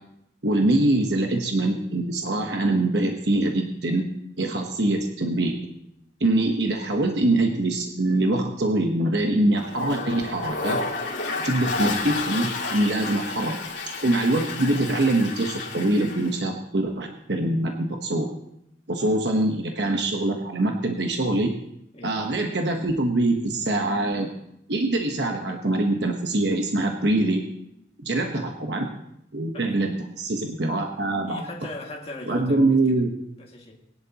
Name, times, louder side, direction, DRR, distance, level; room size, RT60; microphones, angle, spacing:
voice 1, 0.4-4.0 4.4-5.6 6.2-10.8 11.4-13.6 14.0-18.3 18.9-21.5 22.0-24.3 24.7-27.4 28.0-28.9 29.3-31.4 32.3-33.1, right 2 dB, 65° right, 3 dB, 1.1 m, -24 dB
Toilet flush, 9.6-16.3, left 3 dB, 75° left, 2.6 m, -31 dB
voice 2, 11.3-11.7 19.0-19.1 21.9-22.2 28.1-28.3 29.5-29.8 31.2-33.0 33.4-33.8, left 2 dB, 35° left, -1 dB, 2.1 m, -40 dB
20.0 x 11.0 x 2.9 m, 0.78 s
head